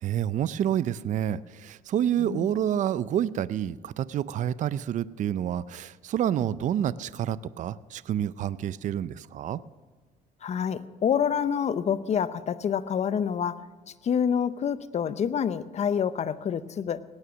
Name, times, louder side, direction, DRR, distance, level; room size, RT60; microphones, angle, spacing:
voice 1, 0.0-9.6, right 10 dB, 45° right, 17 dB, 0.4 m, -28 dB
voice 2, 10.4-13.6 14.0-17.0, left 8 dB, 40° left, 14 dB, 0.7 m, -27 dB
18.5 x 9.7 x 6.2 m, 1.4 s
cardioid pair, 110°, 17 cm